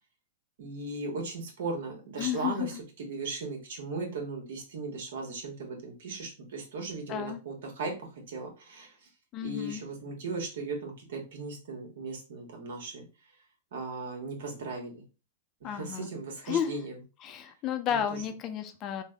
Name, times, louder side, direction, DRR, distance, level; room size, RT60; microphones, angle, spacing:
voice 1, 0.6-8.9 9.4-13.0 13.7-15.0 15.6-16.9 17.9-18.2, right 3 dB, 75° right, 2 dB, 1.2 m, -37 dB
voice 2, 2.2-2.8 7.1-7.4 9.3-9.8 15.6-16.1 16.4-16.8 17.2-19.0, left 9 dB, 35° left, 7 dB, 0.5 m, -32 dB
3.3 x 2.1 x 3.4 m, 0.32 s
hypercardioid pair, 135°, 0 cm